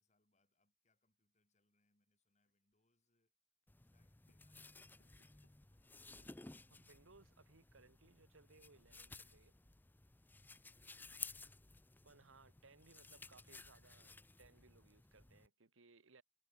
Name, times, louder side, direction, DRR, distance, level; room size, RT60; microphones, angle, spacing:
voice 1, 0.0-3.3 3.8-6.4, left 2 dB, 35° left, 8.0 m, -85 dB
sound 1, 2.3-2.9 3.6-3.7 4.0-5.8 6.3-6.4 6.6-6.7 7.0-7.2, left 2 dB, 70° left, 2.1 m, -82 dB
sound 2, 3.7-15.5, left 3 dB, 10° left, 0.5 m, -56 dB
voice 2, 6.1-9.5 12.0-16.2, right 3 dB, 85° right, 1.5 m, -66 dB
head